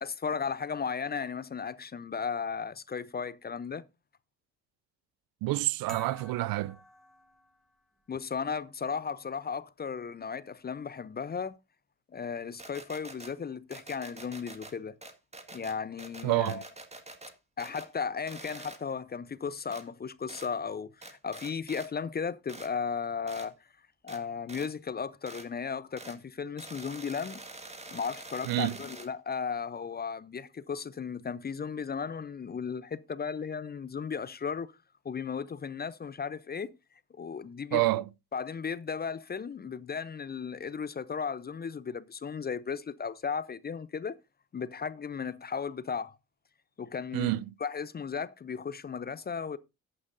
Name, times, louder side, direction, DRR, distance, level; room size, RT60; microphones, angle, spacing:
voice 1, 0.0-3.8 8.1-11.6 12.1-14.9 15.5-16.6 17.6-23.5 24.0-27.4 27.9-34.7 35.0-36.7 37.2-37.9 38.3-44.2 44.5-46.2 46.8-47.3 47.6-49.6, left 6 dB, 25° left, 0.5 m, -35 dB
voice 2, 5.4-6.8 16.2-16.6 28.4-28.8 37.7-38.0 47.1-47.5, right 18 dB, 55° right, 0.5 m, -28 dB
sound 1, 5.9-7.8, left 1 dB, ahead, 2.2 m, -50 dB
sound 2, 12.6-13.3 13.7-14.7 15.0-17.3 17.6-17.9 18.3-18.8 19.7-19.8 20.3-20.5 21.0-21.9 22.5-22.7 23.3-23.5 24.1-24.2 24.5-24.7 25.3-25.5 26.0-26.2 26.6-29.1, right 2 dB, 15° right, 1.8 m, -46 dB
14.0 x 8.6 x 2.6 m
hypercardioid pair, 55°, 43 cm